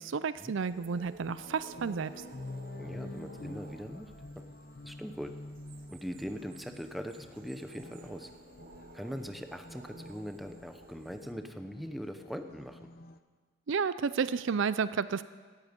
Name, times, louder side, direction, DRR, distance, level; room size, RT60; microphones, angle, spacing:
voice 1, 0.0-2.2 13.7-15.2, right 5 dB, 65° right, 15 dB, 0.5 m, -31 dB
sound 1, 0.6-11.3, right 3 dB, 45° right, 1.1 m, -55 dB
sound 2, 1.2-13.2, left 2 dB, 50° left, 0.8 m, -48 dB
voice 2, 2.7-4.4 4.8-5.3 5.9-8.3 8.9-12.9, equal, ahead, 6 dB, 0.8 m, -41 dB
17.5 x 14.0 x 5.3 m, 1.5 s
head